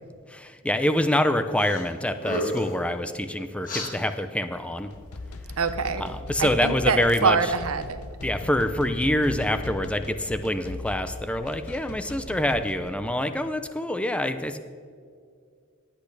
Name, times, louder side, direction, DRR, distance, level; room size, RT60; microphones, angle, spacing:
voice 1, 0.3-4.9 6.0-7.4 8.2-14.6, left 1 dB, 5° left, 9 dB, 0.5 m, -26 dB
sound 1, 1.6-1.9 2.2-2.8 3.6-3.9, left 1 dB, 40° left, 1.7 m, -30 dB
sound 2, 4.7-12.9, left 2 dB, 80° left, 0.8 m, -38 dB
voice 2, 5.6-6.1 6.4-8.0, right 5 dB, 85° right, 10 dB, 0.7 m, -25 dB
18.5 x 8.5 x 3.3 m, 2.2 s
head